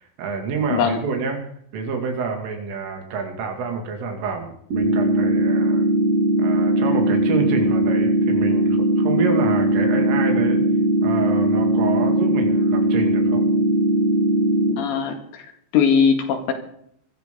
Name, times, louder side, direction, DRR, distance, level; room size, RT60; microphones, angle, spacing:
voice 1, 0.0-1.4 1.7-5.9 6.4-10.6 11.0-13.5, right 4 dB, 85° right, 3 dB, 5.2 m, -28 dB
sound 1, 4.7-14.7, right 1 dB, 35° right, 6.3 m, -19 dB
voice 2, 14.8-16.5, left 6 dB, 70° left, 4 dB, 4.2 m, -20 dB
22.0 x 14.0 x 3.9 m, 0.68 s
omnidirectional pair, 5.5 m